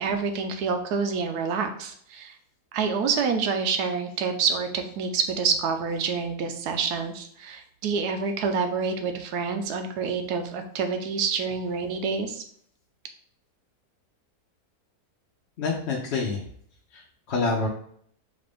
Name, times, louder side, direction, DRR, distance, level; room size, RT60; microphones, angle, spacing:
voice 1, 0.0-2.3 2.7-12.4, right 5 dB, 85° right, 6 dB, 1.2 m, -27 dB
voice 2, 15.6-16.5 16.9-17.7, left 4 dB, 55° left, -2 dB, 0.8 m, -27 dB
5.0 x 2.5 x 3.5 m, 0.62 s
omnidirectional pair, 1.7 m